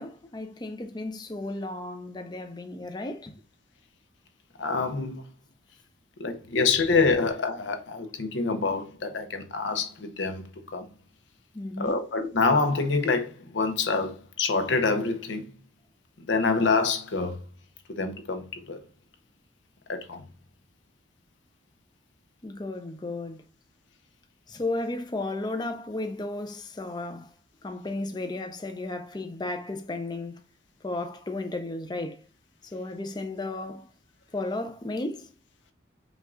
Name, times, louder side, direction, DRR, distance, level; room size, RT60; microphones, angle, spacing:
voice 1, 0.0-3.3 11.5-12.0 22.4-23.4 24.5-27.3 27.6-30.4 30.8-32.2 32.7-33.9 34.3-35.3, left 2 dB, 25° left, 0.5 m, -34 dB
voice 2, 4.6-5.2 6.2-10.4 10.7-10.9 11.8-15.5 16.3-17.4 17.9-18.8 19.9-20.2, left 4 dB, 75° left, 0.7 m, -26 dB
5.2 x 2.4 x 3.7 m
head